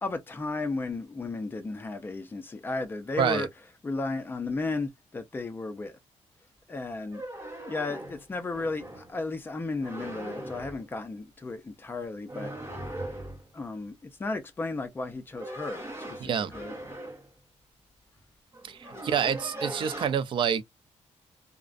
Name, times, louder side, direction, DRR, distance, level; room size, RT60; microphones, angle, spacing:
voice 1, 0.0-3.5 3.8-5.9 6.7-7.2 7.6-12.5 13.5-16.7, left 3 dB, 15° left, 0.5 m, -34 dB
sound 1, 7.0-9.1 9.8-10.9 12.3-13.5 15.0-17.3 18.2-18.3 18.5-20.1, right 1 dB, 20° right, 0.8 m, -40 dB
voice 2, 16.2-16.5 18.7-18.8 19.0-20.6, right 7 dB, 45° right, 0.3 m, -27 dB
2.4 x 2.1 x 2.4 m
wide cardioid pair, 170°, 12 cm